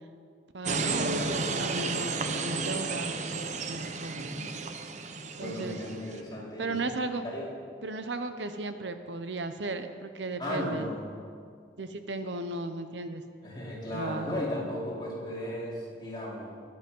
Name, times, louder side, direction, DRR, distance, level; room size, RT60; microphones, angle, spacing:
voice 1, 0.5-3.3 3.6-4.3 5.4-5.8 6.6-7.2 7.8-10.9 11.8-13.2 13.9-14.4, right 2 dB, 80° right, 9 dB, 0.9 m, -35 dB
sound 1, 0.7-6.2, right 3 dB, 40° right, 0.7 m, -32 dB
voice 2, 4.1-4.6 5.4-6.9 7.2-7.5 10.4-11.2 13.4-16.5, left 1 dB, 25° left, -6 dB, 3.8 m, -36 dB
20.5 x 8.2 x 5.5 m, 2.2 s
head